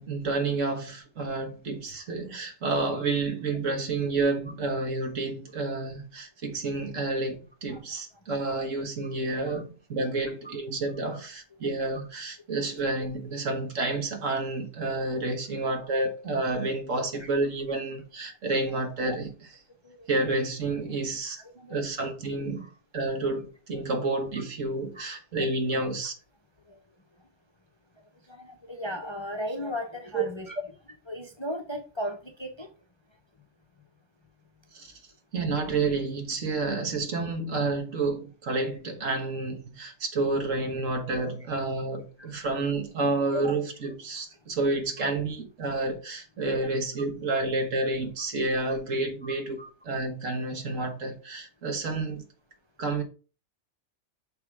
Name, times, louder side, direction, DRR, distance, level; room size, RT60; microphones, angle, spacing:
voice 1, 0.0-19.6 20.1-21.4 21.7-22.7 22.9-26.1 30.1-30.3 34.7-34.9 35.3-52.2 52.8-53.0, right 3 dB, 65° right, 1.7 m, -30 dB
voice 2, 21.4-21.8 22.6-22.7 24.3-24.4 24.9-25.5 26.7-26.8 28.3-30.6 31.1-32.7 42.2-42.4 43.1-43.2 45.0-45.1 46.4-46.7 47.3-47.4 48.6-48.7 49.2-49.7, equal, 25° left, 0.7 m, -38 dB
6.7 x 3.7 x 4.7 m
omnidirectional pair, 1.4 m